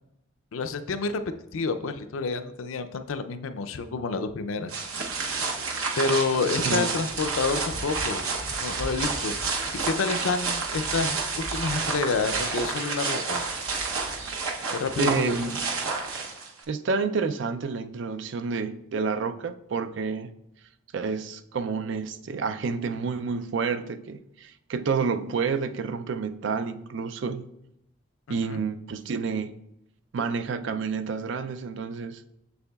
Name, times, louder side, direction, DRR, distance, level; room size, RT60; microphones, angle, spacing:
voice 1, 0.5-1.2 1.5-4.7 6.0-8.2 8.6-13.4 14.7-15.3 28.3-28.6, left 4 dB, 80° left, 0.5 m, -29 dB
sound 1, 4.7-16.6, right 4 dB, 85° right, 0.8 m, -30 dB
voice 2, 15.0-15.6 16.7-20.3 20.9-27.5 28.3-29.6 30.1-32.2, right 5 dB, 60° right, 0.4 m, -29 dB
7.1 x 6.7 x 2.3 m
head